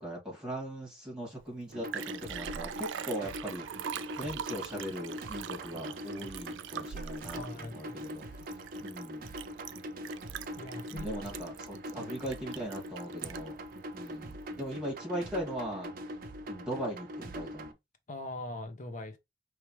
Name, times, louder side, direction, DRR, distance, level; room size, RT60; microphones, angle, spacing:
voice 1, 0.0-8.3 8.8-9.3 10.9-13.6 13.9-15.9 16.5-17.7, equal, 5° right, 2.1 m, -39 dB
Liquid, 1.4-1.5 1.7-13.6 14.1-14.2, right 9 dB, 70° right, 0.4 m, -42 dB
sound 1, 1.7-17.7, equal, 50° right, 0.7 m, -42 dB
voice 2, 7.3-8.0 8.3-8.5 10.6-11.2 18.1-19.2, left 2 dB, 40° left, 0.9 m, -42 dB
4.8 x 3.1 x 3.1 m
head